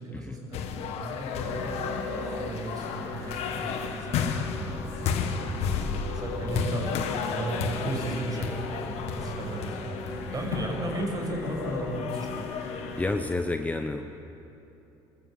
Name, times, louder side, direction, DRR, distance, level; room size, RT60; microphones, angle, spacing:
voice 1, 0.0-1.8 2.4-5.4 5.7-6.9 7.3-12.5, right 2 dB, 35° right, 1 dB, 6.2 m, -35 dB
sound 1, 0.5-13.4, left 6 dB, 70° left, 1.7 m, -33 dB
Musical instrument, 1.3-13.2, left 2 dB, 90° left, 6.1 m, -38 dB
voice 2, 13.0-14.0, left 2 dB, 15° left, 6 dB, 1.0 m, -29 dB
25.5 x 13.5 x 8.3 m, 3.0 s
supercardioid pair, 95°, 11 cm